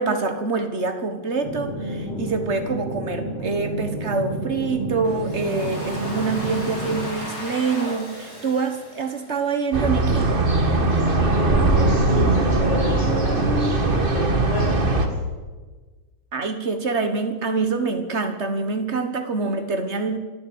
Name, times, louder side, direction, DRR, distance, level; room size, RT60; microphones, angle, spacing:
voice 1, 0.0-10.3 16.3-20.2, right 4 dB, 70° right, 7 dB, 0.6 m, -25 dB
sound 1, 1.4-7.1, right 1 dB, 50° left, 4.7 m, -30 dB
Domestic sounds home sounds, 5.0-10.0, equal, 30° left, 6.9 m, -36 dB
sound 2, 9.7-15.1, right 2 dB, 25° right, 1.3 m, -20 dB
voice 2, 11.2-15.1 19.4-19.5, left 2 dB, 10° left, -2 dB, 4.7 m, -32 dB
26.5 x 12.5 x 8.8 m, 1.3 s
omnidirectional pair, 3.6 m